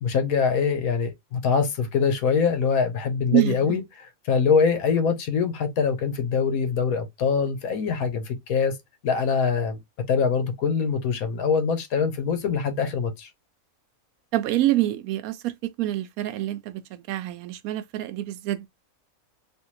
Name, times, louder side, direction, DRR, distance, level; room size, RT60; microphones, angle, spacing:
voice 1, 0.0-8.7 9.0-9.8 10.1-13.3, left 6 dB, 80° left, 1.3 m, -24 dB
voice 2, 3.3-3.8 14.3-18.7, right 15 dB, 85° right, 1.0 m, -26 dB
3.4 x 2.7 x 2.9 m
omnidirectional pair, 1.5 m